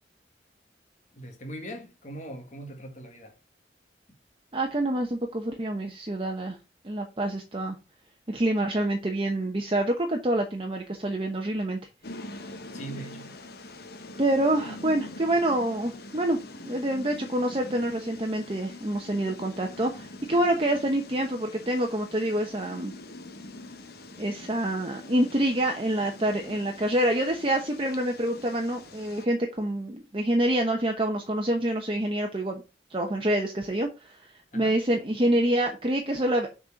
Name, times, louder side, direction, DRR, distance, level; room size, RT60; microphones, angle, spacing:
voice 1, 1.1-3.4 12.7-13.4 34.5-34.8, right 1 dB, 40° left, 1.8 m, -41 dB
voice 2, 4.5-6.6 6.8-7.8 8.3-11.8 14.2-22.9 24.2-32.6 32.9-33.9 34.2-34.3 34.5-36.5, right 1 dB, 30° right, 1.0 m, -27 dB
sound 1, 12.0-29.3, left 2 dB, 60° left, 1.1 m, -44 dB
6.7 x 4.3 x 6.2 m
head